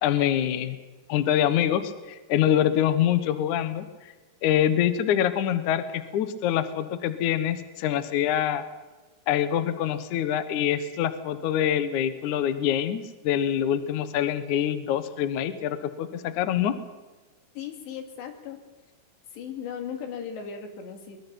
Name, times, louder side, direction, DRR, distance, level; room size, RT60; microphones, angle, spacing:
voice 1, 0.0-0.8 1.1-4.1 4.4-8.6 9.3-16.7, left 10 dB, 85° left, 11 dB, 1.7 m, -25 dB
voice 2, 17.6-18.6 19.3-21.2, left 7 dB, 70° left, 5 dB, 4.3 m, -37 dB
22.5 x 21.5 x 6.0 m, 1.2 s
omnidirectional pair, 5.4 m